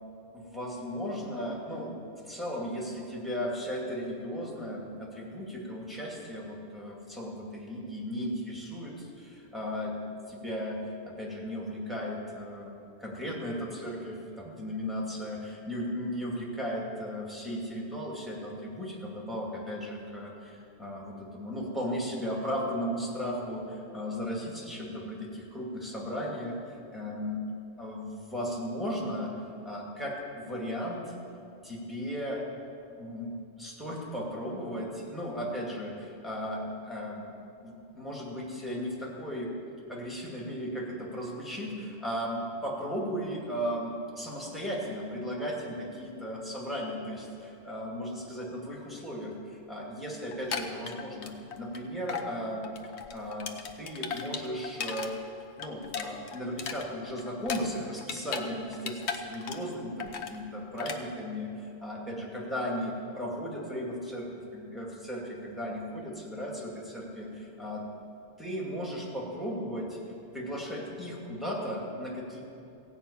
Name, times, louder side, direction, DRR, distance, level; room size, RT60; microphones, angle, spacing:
voice 1, 0.3-1.9 2.3-9.9 10.3-12.7 13.0-26.6 26.9-27.4 27.8-29.3 29.6-31.1 31.6-32.4 33.0-37.3 37.6-39.5 39.9-52.7 53.1-55.2 55.6-67.8 68.4-70.0 70.3-72.4, equal, ahead, -3 dB, 2.3 m, -36 dB
sound 1, 50.3-51.8 52.1-52.3 52.6-55.1 55.4-58.5 58.7-59.7 60.0-60.4 60.8-61.0, left 6 dB, 75° left, 1.1 m, -36 dB
16.0 x 5.8 x 8.7 m, 2.6 s
omnidirectional pair, 1.1 m